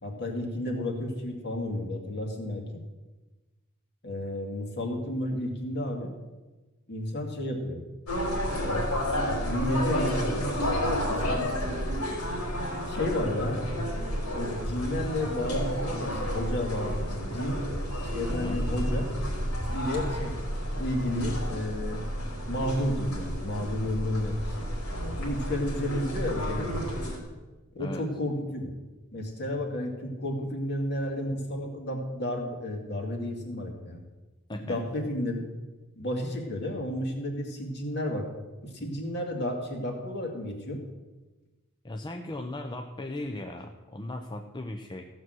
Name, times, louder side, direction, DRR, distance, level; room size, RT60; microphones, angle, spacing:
voice 1, 0.0-2.8 4.0-6.1 6.9-7.8 8.6-8.9 9.3-11.5 12.9-13.6 14.3-17.6 18.0-19.1 19.7-20.4 20.7-22.0 22.5-24.7 25.2-27.0 27.7-28.7 29.1-34.0 34.6-35.5 36.0-38.3 38.6-40.8, left 1 dB, 50° left, 2 dB, 2.3 m, -32 dB
sound 1, 8.1-27.2, equal, 85° left, 4.4 m, -31 dB
voice 2, 41.8-45.1, left 1 dB, 20° left, 4 dB, 0.6 m, -37 dB
15.0 x 6.2 x 7.7 m, 1.2 s
head